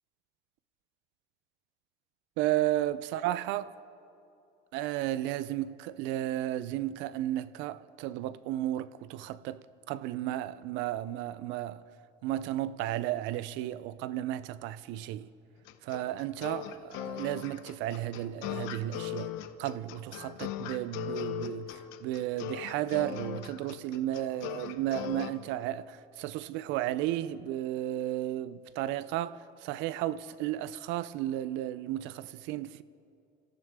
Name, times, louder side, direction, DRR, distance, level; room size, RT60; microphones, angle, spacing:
voice 1, 2.4-3.7 4.7-11.8 12.2-15.3 15.8-19.3 19.6-32.8, right 13 dB, 75° right, 0.5 m, -33 dB
sound 1, 15.7-25.3, left 12 dB, 85° left, 0.9 m, -39 dB
28.0 x 14.0 x 3.6 m
cardioid pair, 145°, 19 cm